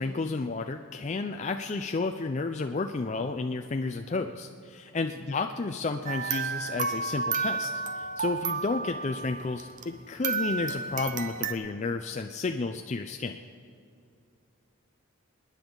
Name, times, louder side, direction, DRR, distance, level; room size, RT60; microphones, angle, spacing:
voice 1, 0.0-13.4, left 3 dB, 35° left, 5 dB, 0.4 m, -32 dB
sound 1, 6.1-9.9 10.2-11.5, right 5 dB, 35° right, 0.8 m, -32 dB
28.0 x 9.8 x 3.9 m, 2.4 s
head